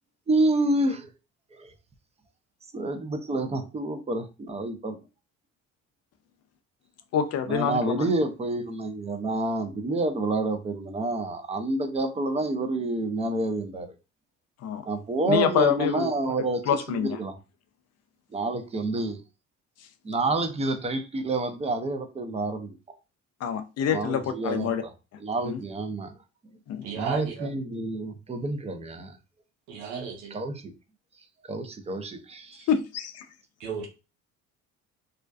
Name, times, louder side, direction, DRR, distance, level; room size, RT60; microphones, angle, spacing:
voice 1, 0.3-1.1 1.6-1.7 2.7-5.0 7.5-13.9 14.9-16.6 16.9-17.3 18.3-19.2 20.0-22.7 23.9-24.7 25.2-26.1 26.9-29.2 30.3-30.5 31.5-32.7, right 2 dB, 20° right, 0.5 m, -28 dB
voice 2, 7.1-8.1 14.6-14.9 15.3-16.1 16.6-17.2 23.4-24.8 25.4-25.6 26.7-26.9 32.7-33.3, left 8 dB, 50° left, 0.4 m, -26 dB
voice 3, 26.8-27.5 29.7-30.4 33.6-33.9, right 6 dB, 85° right, 0.7 m, -34 dB
2.4 x 2.2 x 2.3 m
supercardioid pair, 75°, 34 cm